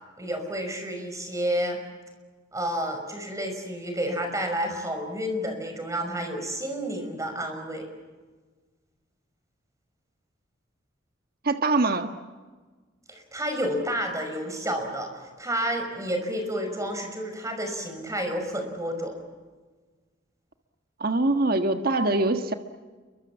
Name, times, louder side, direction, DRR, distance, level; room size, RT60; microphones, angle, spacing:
voice 1, 0.2-1.8 2.5-7.9 13.1-19.2, equal, 15° right, 5 dB, 5.7 m, -30 dB
voice 2, 11.4-12.1 21.0-22.5, right 2 dB, 50° right, 7 dB, 1.5 m, -23 dB
29.0 x 24.0 x 7.3 m, 1.4 s
head